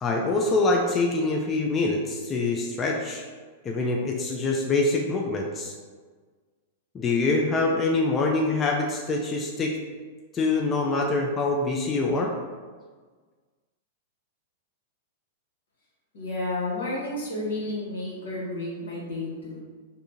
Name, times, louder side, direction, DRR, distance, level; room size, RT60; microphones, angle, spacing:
voice 1, 0.0-3.2 3.6-5.7 6.9-9.7 10.3-12.3, left 3 dB, 25° left, 0 dB, 0.4 m, -25 dB
voice 2, 16.1-19.6, left 2 dB, 80° left, -5 dB, 1.4 m, -31 dB
3.5 x 2.6 x 2.7 m, 1.5 s
hypercardioid pair, 125°, 0 cm